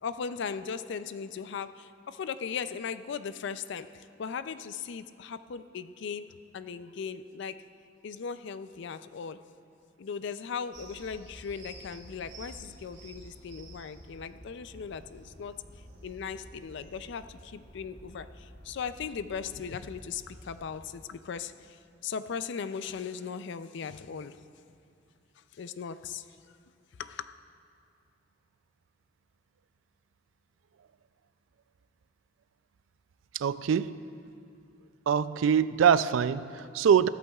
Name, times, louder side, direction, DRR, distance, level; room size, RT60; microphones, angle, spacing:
voice 1, 0.0-7.6 8.0-9.4 10.0-15.6 16.0-24.4 25.4-26.3 27.0-27.4, left 6 dB, 65° left, 0.4 m, -38 dB
sound 1, 10.7-20.8, right 1 dB, 65° right, 2.9 m, -51 dB
voice 2, 33.3-34.0 35.1-37.1, right 7 dB, 85° right, 0.3 m, -24 dB
16.5 x 13.5 x 2.4 m
head